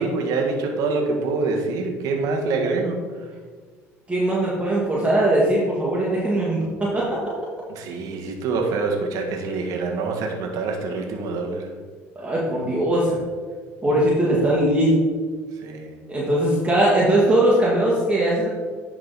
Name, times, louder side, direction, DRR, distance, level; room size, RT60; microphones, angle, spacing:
voice 1, 0.0-3.0 7.7-11.7 15.6-15.9, right 3 dB, 70° right, 2 dB, 1.4 m, -25 dB
voice 2, 4.1-7.2 12.2-13.2 13.8-15.0 16.1-18.5, right 1 dB, 20° right, -5 dB, 1.8 m, -20 dB
10.5 x 3.9 x 4.0 m, 1.5 s
supercardioid pair, 85°, 6 cm